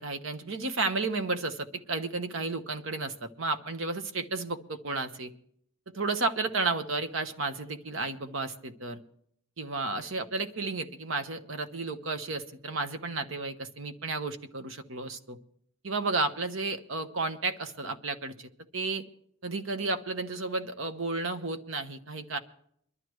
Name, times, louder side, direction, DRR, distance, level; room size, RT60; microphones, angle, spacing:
voice 1, 0.0-5.3 5.9-9.0 9.6-15.4 15.8-19.0 19.4-22.4, right 3 dB, 70° right, 8 dB, 1.1 m, -32 dB
23.0 x 12.5 x 3.1 m, 0.65 s
head